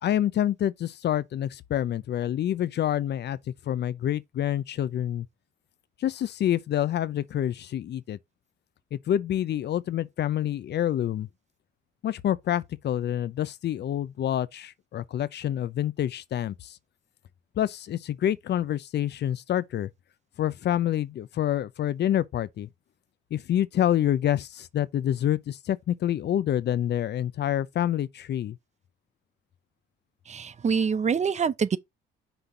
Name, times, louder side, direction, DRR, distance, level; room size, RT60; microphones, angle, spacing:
voice 1, 0.0-3.4 3.7-5.3 6.0-8.2 8.9-11.3 12.0-16.8 17.6-19.9 20.4-22.7 23.3-28.6, left 11 dB, 60° left, 0.6 m, -27 dB
voice 2, 30.3-31.8, right 6 dB, 35° right, 0.6 m, -25 dB
6.0 x 3.4 x 5.4 m
cardioid pair, 90°, 20 cm